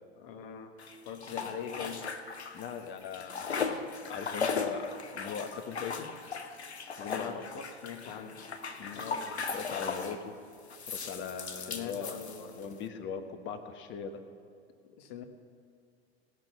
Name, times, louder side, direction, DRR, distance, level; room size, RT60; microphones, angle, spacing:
voice 1, 0.2-0.8 1.0-2.1 7.2-7.5 7.8-8.5 8.9-9.5 11.7-12.6 14.8-15.2, left 8 dB, 60° left, 7 dB, 1.3 m, -42 dB
sound 1, 0.8-2.8 3.0-10.2 10.7-12.7, left 5 dB, 85° left, 0.9 m, -37 dB
voice 2, 2.5-6.1 7.0-7.6 8.8-9.1 9.5-10.3 10.8-12.2 12.6-14.2, left 6 dB, 35° left, 7 dB, 1.3 m, -40 dB
18.5 x 6.2 x 7.0 m, 2.4 s
figure-of-eight pair, 85°, 32 cm